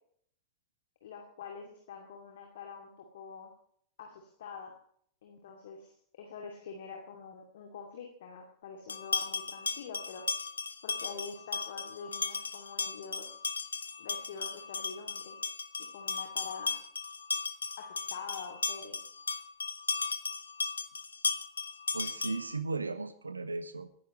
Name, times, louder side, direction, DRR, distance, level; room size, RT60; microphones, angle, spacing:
voice 1, 1.0-3.5 4.0-4.7 5.2-10.2 10.8-13.4 14.0-15.4 15.9-16.8 17.8-19.0, left 5 dB, 60° left, 3 dB, 2.4 m, -45 dB
sound 1, 8.9-22.6, left 4 dB, 75° left, 0.8 m, -36 dB
voice 2, 21.9-23.9, right 3 dB, 80° right, 13 dB, 1.1 m, -36 dB
25.5 x 10.5 x 3.1 m, 0.63 s
figure-of-eight pair, 90°, 0 cm